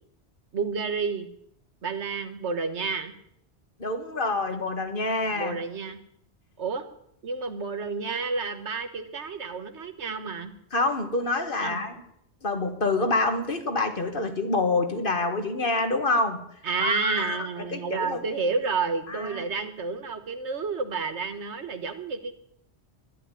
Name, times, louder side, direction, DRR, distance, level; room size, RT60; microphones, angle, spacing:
voice 1, 0.5-1.3 1.8-3.1 5.3-6.0 6.6-6.9 7.2-10.5 11.6-11.8 16.6-22.4, right 4 dB, 85° right, 9 dB, 1.6 m, -30 dB
voice 2, 3.8-5.6 10.7-12.0 12.4-16.4 16.8-18.2 19.1-19.4, left 2 dB, 55° left, 7 dB, 1.8 m, -27 dB
13.0 x 11.0 x 9.1 m, 0.71 s
omnidirectional pair, 1.1 m